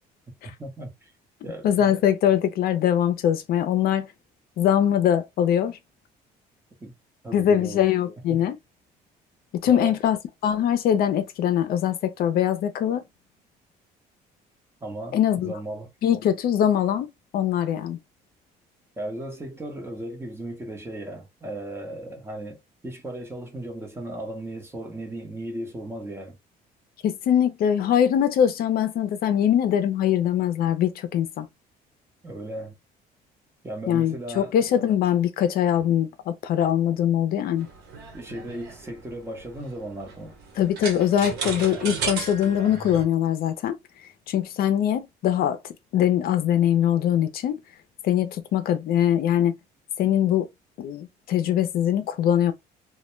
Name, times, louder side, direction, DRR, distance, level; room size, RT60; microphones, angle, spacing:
voice 1, 0.6-1.1 1.4-1.9 6.8-6.9 7.2-7.8 8.3-8.5 9.6-10.0 14.8-15.9 19.0-26.4 32.2-32.7 33.6-34.5 38.1-40.4, right 1 dB, 15° right, 0.9 m, -36 dB
voice 2, 1.6-4.1 4.6-5.8 7.3-8.6 9.5-10.2 10.4-13.0 15.1-15.5 16.0-17.1 17.3-18.0 27.0-31.5 33.9-37.7 40.6-43.8 44.3-45.6 45.9-47.6 48.0-49.5 50.0-50.5 50.8-52.5, left 10 dB, 65° left, 0.5 m, -22 dB
sound 1, 37.6-43.0, right 5 dB, 80° right, 1.0 m, -34 dB
2.2 x 2.1 x 3.0 m
cardioid pair, 110°, 17 cm